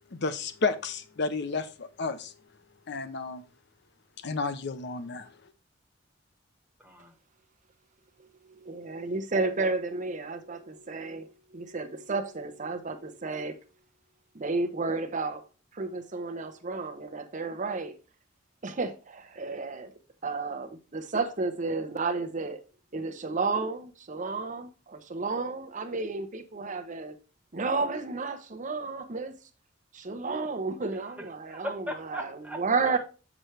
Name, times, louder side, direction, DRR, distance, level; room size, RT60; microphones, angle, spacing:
voice 1, 0.1-2.3 2.9-3.4 4.2-5.3, left 4 dB, 65° left, 0.7 m, -31 dB
voice 2, 6.8-7.2 31.0-33.0, equal, 10° right, 1.7 m, -39 dB
voice 3, 8.6-13.6 14.3-15.4 15.7-18.0 18.6-19.9 20.2-22.6 22.9-27.2 27.5-29.3 29.9-31.7 32.1-32.3 32.6-33.0, right 3 dB, 40° right, 0.8 m, -32 dB
7.9 x 6.1 x 3.3 m
head